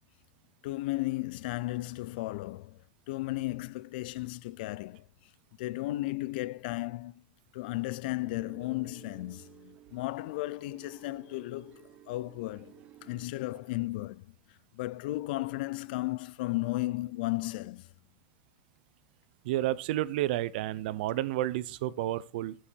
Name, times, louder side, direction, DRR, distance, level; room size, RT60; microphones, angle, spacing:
voice 1, 0.6-2.8 3.1-5.0 5.6-7.2 7.5-12.7 13.0-14.2 14.7-17.9, left 19 dB, 70° left, 0.3 m, -34 dB
sound 1, 8.2-13.3, right 11 dB, 25° right, 1.0 m, -55 dB
voice 2, 19.4-22.6, right 14 dB, 75° right, 0.6 m, -31 dB
9.8 x 6.3 x 4.4 m
supercardioid pair, 180°, 5 cm